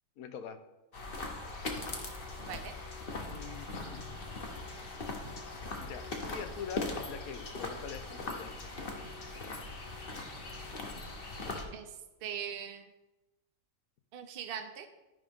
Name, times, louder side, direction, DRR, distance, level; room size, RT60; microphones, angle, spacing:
voice 1, 0.2-0.6 3.3-4.1 5.8-8.7, left 7 dB, 80° left, 9 dB, 1.2 m, -44 dB
sound 1, 0.9-11.6, left 3 dB, 45° left, 1.2 m, -40 dB
voice 2, 2.4-2.7 11.7-12.9 14.1-14.9, right 8 dB, 50° right, 5 dB, 0.9 m, -41 dB
12.5 x 5.3 x 3.6 m, 1.0 s
omnidirectional pair, 1.5 m